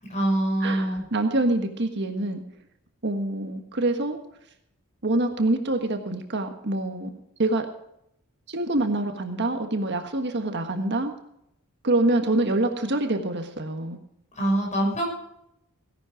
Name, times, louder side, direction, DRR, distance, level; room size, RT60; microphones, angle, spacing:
voice 1, 0.0-1.0 14.4-15.1, right 1 dB, 30° left, -1 dB, 6.1 m, -24 dB
voice 2, 0.6-2.4 3.0-4.2 5.0-7.1 7.4-7.7 8.5-11.1 11.8-14.0, right 2 dB, 50° right, 6 dB, 1.5 m, -25 dB
17.0 x 11.0 x 4.9 m, 0.76 s
head